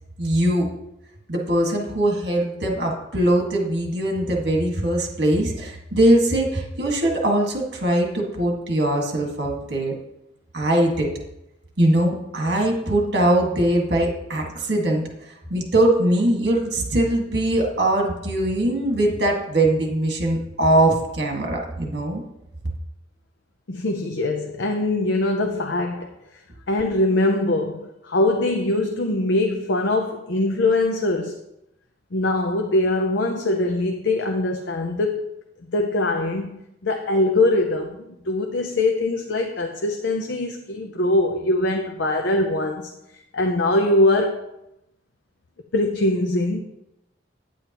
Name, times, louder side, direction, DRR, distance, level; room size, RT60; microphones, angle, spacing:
voice 1, 0.2-0.7 1.3-10.0 10.5-11.1 11.8-15.0 15.5-22.2, right 1 dB, 60° right, 0 dB, 1.8 m, -21 dB
voice 2, 23.7-26.1 26.7-31.4 32.1-35.2 35.7-42.9 43.3-44.5 45.7-46.6, left 2 dB, 75° left, 4 dB, 0.6 m, -22 dB
9.2 x 8.5 x 3.0 m, 0.87 s
head